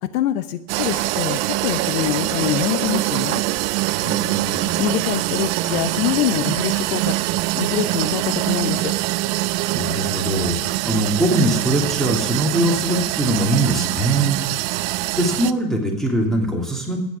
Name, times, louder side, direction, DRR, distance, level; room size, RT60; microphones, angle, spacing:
voice 1, 0.0-3.4 4.8-7.2 7.5-8.9, left 13 dB, 70° left, 12 dB, 0.9 m, -24 dB
sound 1, 0.7-15.5, right 18 dB, 50° right, 0.5 m, -23 dB
voice 2, 4.0-4.8 9.7-14.5 14.8-17.0, right 1 dB, ahead, -1 dB, 2.8 m, -22 dB
15.0 x 9.4 x 6.1 m, 0.90 s
supercardioid pair, 145°, 47 cm